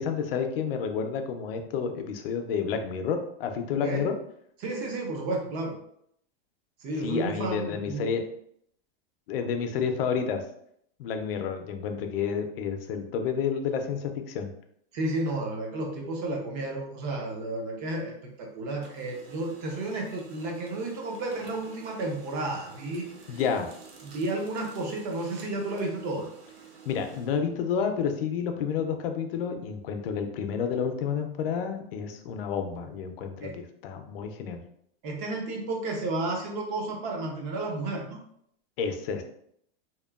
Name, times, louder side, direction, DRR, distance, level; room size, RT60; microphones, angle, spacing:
voice 1, 0.0-4.1 7.0-8.2 9.3-10.4 11.0-14.5 23.3-23.7 26.9-34.6 38.8-39.2, left 6 dB, 70° left, 6 dB, 0.5 m, -30 dB
voice 2, 4.6-5.7 6.8-8.1 14.9-18.1 18.4-23.0 24.0-26.3 33.4-33.6 35.0-38.2, right 2 dB, 30° right, 1 dB, 0.5 m, -32 dB
Printer, 17.1-18.4 18.7-28.2, right 5 dB, 80° right, 0.7 m, -51 dB
2.8 x 2.2 x 2.3 m, 0.70 s
supercardioid pair, 160°, 30 cm